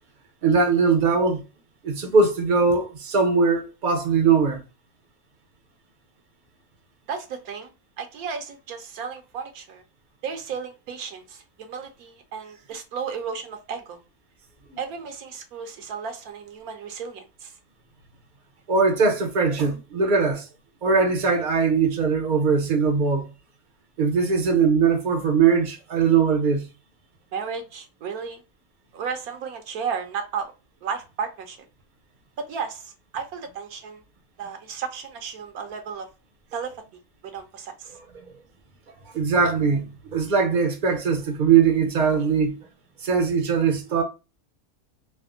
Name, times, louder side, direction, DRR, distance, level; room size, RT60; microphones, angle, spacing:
voice 1, 0.4-1.4 1.8-4.6 18.7-20.5 20.8-23.3 24.0-26.7 38.1-38.2 39.1-42.6 43.0-44.0, right 5 dB, 50° right, 0.6 m, -21 dB
voice 2, 7.1-7.7 8.0-9.8 10.2-14.0 14.8-17.6 27.3-28.4 28.9-30.5 30.8-31.6 32.4-34.0 34.4-36.1 36.5-36.7 37.2-38.0, right 6 dB, 80° right, 1.1 m, -34 dB
3.3 x 2.1 x 2.4 m
omnidirectional pair, 1.6 m